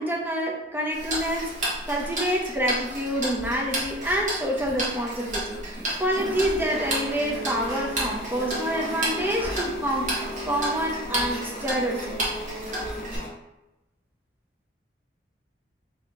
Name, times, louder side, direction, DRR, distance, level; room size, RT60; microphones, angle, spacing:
voice 1, 0.0-1.5 1.9-10.1 10.4-12.1, equal, 10° right, -2 dB, 0.6 m, -27 dB
Tick-tock, 0.9-13.2, right 1 dB, 40° right, 1.1 m, -32 dB
sound 1, 6.6-13.3, left 1 dB, 50° left, 0.7 m, -36 dB
3.2 x 2.8 x 4.4 m, 0.96 s
head